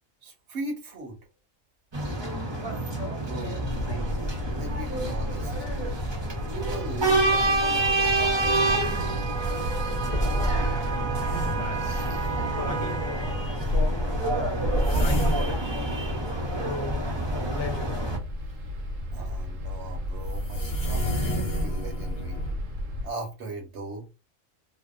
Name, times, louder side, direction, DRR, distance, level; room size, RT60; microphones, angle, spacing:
voice 1, 0.2-1.2 3.2-3.7 4.5-5.5 6.5-7.6 7.9-9.2 19.1-22.4 23.0-24.1, right 2 dB, 65° right, 1.0 m, -38 dB
sound 1, 1.9-18.2, right 2 dB, 30° right, 0.5 m, -28 dB
sound 2, 3.6-23.1, left 1 dB, 80° right, 1.1 m, -33 dB
sound 3, 10.1-12.6 14.6-17.0 19.2-19.3 20.3-22.5, equal, 35° left, 0.6 m, -29 dB
voice 2, 11.4-12.2 12.5-14.4 14.7-15.9 16.4-18.2, left 5 dB, 65° left, 0.9 m, -38 dB
2.7 x 2.1 x 2.3 m
omnidirectional pair, 1.4 m